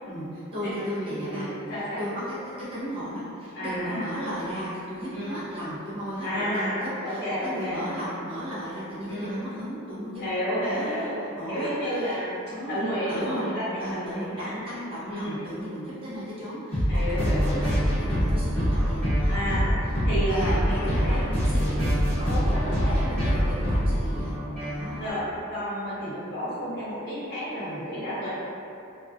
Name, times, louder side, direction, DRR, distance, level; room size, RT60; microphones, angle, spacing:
voice 1, 0.1-2.3 2.7-10.2 10.6-12.2 12.5-12.8 13.1-19.6 19.9-24.3 24.6-25.1 26.0-26.2 27.6-27.9, equal, 25° right, -10 dB, 0.7 m, -35 dB
voice 2, 0.6-2.0 3.5-4.0 5.1-5.4 6.2-7.8 9.0-9.4 10.2-11.2 11.5-14.5 15.0-15.5 16.9-17.6 19.3-19.7 20.0-21.2 22.3-23.0 25.0-25.2 25.5-28.3, equal, 50° left, -15 dB, 0.8 m, -31 dB
sound 1, 16.7-25.1, equal, 5° left, 0.9 m, -25 dB
2.5 x 2.2 x 2.3 m, 2.6 s
head